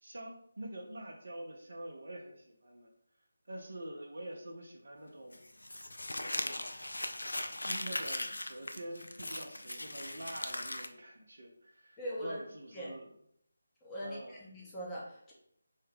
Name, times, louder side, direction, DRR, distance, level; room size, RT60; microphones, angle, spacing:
voice 1, 0.0-2.9 3.5-5.4 6.2-6.6 7.6-13.1 14.0-14.4, right 1 dB, 60° right, 1 dB, 0.6 m, -46 dB
Crumpling crinkling, 5.3-10.9, left 1 dB, 70° left, 0.3 m, -39 dB
voice 2, 12.0-12.4 12.7-12.9 13.8-15.3, equal, 10° left, -6 dB, 0.7 m, -41 dB
2.7 x 2.2 x 3.3 m, 0.69 s
figure-of-eight pair, 155°, 0 cm